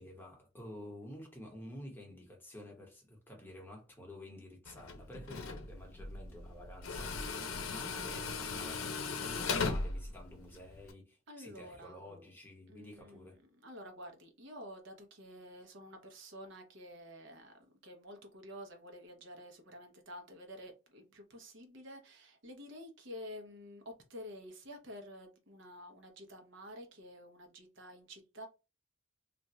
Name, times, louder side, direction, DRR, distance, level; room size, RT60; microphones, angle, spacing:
voice 1, 0.0-13.4, left 1 dB, 10° left, 0.9 m, -51 dB
Tools, 4.6-10.9, left 4 dB, 85° left, 0.6 m, -38 dB
voice 2, 11.3-12.2 12.7-28.5, equal, 60° right, 0.9 m, -50 dB
2.5 x 2.3 x 4.1 m
head